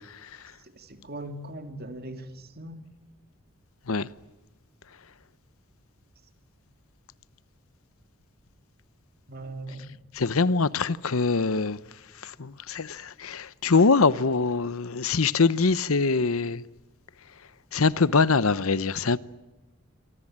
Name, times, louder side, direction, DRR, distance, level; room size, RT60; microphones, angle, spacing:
voice 1, 0.8-2.8 9.3-10.0, right 1 dB, 45° right, 2.6 m, -39 dB
voice 2, 10.1-11.8 12.2-16.6 17.7-19.2, left 4 dB, 75° left, 0.8 m, -23 dB
27.5 x 24.5 x 8.7 m
head